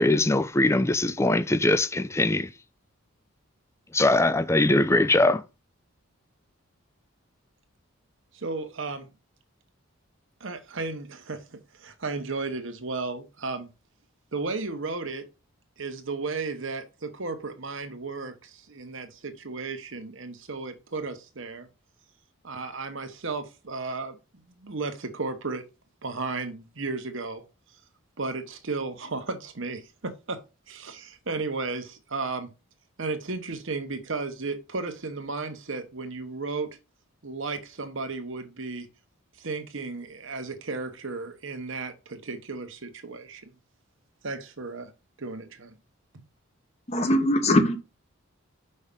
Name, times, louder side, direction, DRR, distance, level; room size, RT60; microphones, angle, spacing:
voice 1, 0.0-2.5 3.9-5.4, left 2 dB, 15° left, 0.4 m, -21 dB
voice 2, 8.3-9.1 10.4-13.7 14.3-15.3 15.8-21.7 22.4-24.2 24.5-25.6 26.0-27.5 28.2-30.4 30.7-32.5 33.0-36.8 37.2-38.9 39.4-43.5 44.2-44.9 45.2-45.7, right 3 dB, 60° right, 1.1 m, -34 dB
voice 3, 46.9-47.8, left 1 dB, 30° left, 1.0 m, -21 dB
5.5 x 5.4 x 3.6 m
head